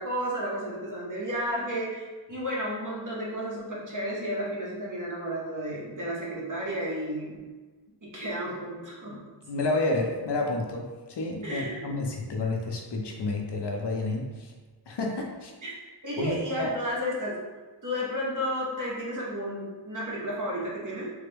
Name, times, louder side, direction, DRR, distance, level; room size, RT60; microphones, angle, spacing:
voice 1, 0.0-7.4 8.0-9.2 11.4-11.9 15.6-15.7 16.0-17.4 17.8-21.1, equal, 45° right, -5 dB, 1.0 m, -32 dB
voice 2, 9.5-14.5 14.9-15.5 16.2-16.7, left 2 dB, 70° left, 0 dB, 0.7 m, -30 dB
3.3 x 2.1 x 3.4 m, 1.3 s
cardioid pair, 45°, 43 cm